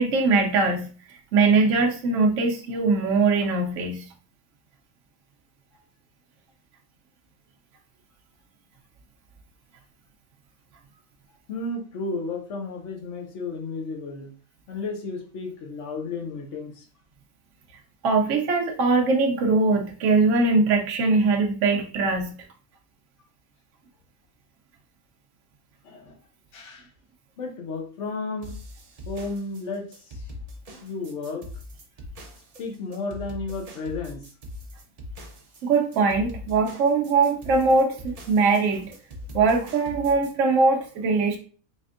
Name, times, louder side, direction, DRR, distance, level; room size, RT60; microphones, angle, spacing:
voice 1, 0.0-4.1 18.0-22.4 35.6-38.9 39.3-41.4, right 3 dB, 70° right, 1 dB, 0.9 m, -21 dB
voice 2, 11.5-14.3 14.7-16.9 25.8-26.2 26.5-26.9 27.4-28.5 29.1-30.2 30.8-31.4 32.6-34.3, left 3 dB, 60° left, 1 dB, 1.1 m, -33 dB
sound 1, 28.4-40.3, left 1 dB, 40° right, 0.5 m, -41 dB
4.1 x 3.3 x 2.4 m, 0.39 s
omnidirectional pair, 1.4 m